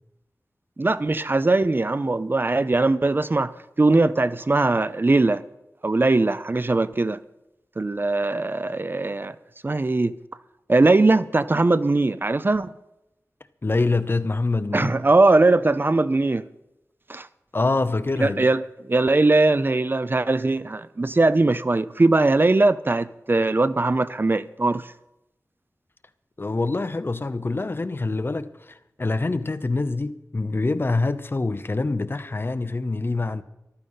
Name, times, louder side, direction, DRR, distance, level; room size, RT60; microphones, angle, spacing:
voice 1, 0.8-5.4 5.8-7.2 7.8-9.4 9.6-10.2 10.7-12.7 14.7-16.5 17.1-17.3 18.2-24.9, right 2 dB, 40° right, 0.6 m, -20 dB
voice 2, 13.6-15.0 17.5-18.5 26.4-33.4, left 3 dB, 40° left, 0.8 m, -25 dB
14.5 x 12.5 x 5.7 m
wide cardioid pair, 70°, 6 cm